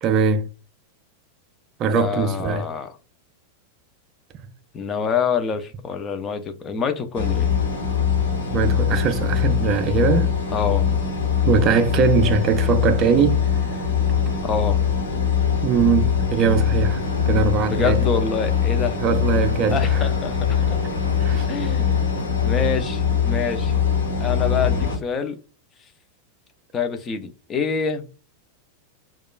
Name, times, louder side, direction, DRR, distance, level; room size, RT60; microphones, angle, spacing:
voice 1, 0.0-0.5 1.8-2.7 8.5-10.3 11.4-13.4 15.6-17.0 17.3-18.0 19.0-20.1 21.2-21.5, right 6 dB, 35° right, 0.4 m, -21 dB
voice 2, 2.0-3.0 4.7-7.5 10.5-10.9 14.4-14.8 17.7-19.0 19.7-20.8 21.5-22.0 22.4-23.7 24.2-25.4 26.7-28.0, left 6 dB, 25° left, 0.6 m, -26 dB
sound 1, 7.1-25.0, left 7 dB, 65° left, 1.2 m, -22 dB
sound 2, 17.0-22.7, left 1 dB, 85° left, 0.6 m, -36 dB
4.6 x 2.3 x 2.3 m
figure-of-eight pair, 90°, 0 cm